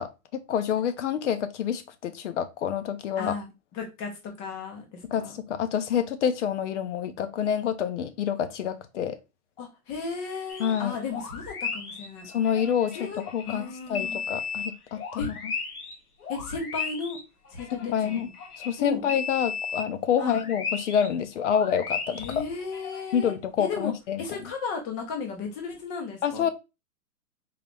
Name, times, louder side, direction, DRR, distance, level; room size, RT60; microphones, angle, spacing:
voice 1, 0.0-3.3 5.0-9.2 10.6-11.0 12.3-15.5 17.8-18.3 18.6-22.4 23.1-24.4 26.2-26.5, left 8 dB, 55° left, 0.8 m, -27 dB
voice 2, 3.2-5.4 9.6-12.3 12.9-14.2 15.2-15.3 16.3-17.2 17.5-18.2 18.8-19.0 20.2-20.4 22.2-26.5, left 5 dB, 15° left, 0.5 m, -35 dB
sound 1, 10.5-10.8 11.1-16.0 16.2-18.8 19.1-21.1 21.4-23.2, left 5 dB, 85° left, 1.5 m, -35 dB
4.0 x 2.9 x 3.3 m
hypercardioid pair, 155°, 44 cm